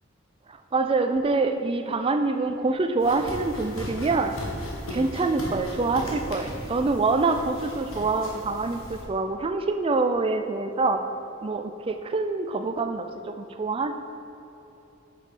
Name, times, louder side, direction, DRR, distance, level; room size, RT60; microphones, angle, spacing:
voice 1, 0.5-4.3 4.9-11.0 11.4-13.1 13.4-13.9, right 3 dB, 25° right, 7 dB, 0.3 m, -25 dB
sound 1, 3.0-9.0, equal, 70° left, 1.4 m, -37 dB
6.7 x 5.4 x 4.9 m, 2.9 s
head